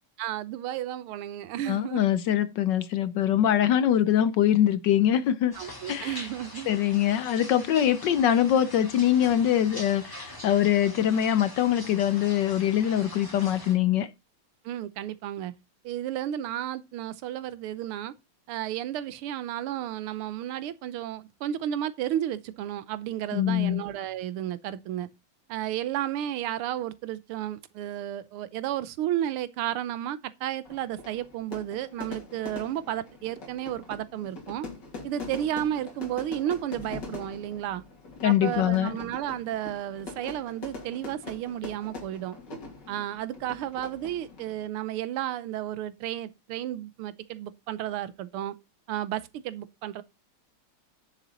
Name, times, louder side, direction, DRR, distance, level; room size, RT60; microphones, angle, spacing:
voice 1, 0.2-2.0 5.5-6.7 14.6-15.5 15.8-18.1 18.5-25.1 25.5-34.7 35.0-37.8 38.2-42.4 42.9-48.6 48.9-50.0, right 12 dB, 85° right, 1.7 m, -32 dB
voice 2, 1.7-5.5 5.9-6.2 6.7-14.1 23.3-23.8 38.2-39.0, left 10 dB, 70° left, 1.2 m, -23 dB
sound 1, 5.5-13.7, left 1 dB, 10° left, 3.0 m, -43 dB
Fire / Fireworks, 30.7-44.7, left 3 dB, 55° left, 3.3 m, -43 dB
10.0 x 7.1 x 4.0 m
omnidirectional pair, 2.4 m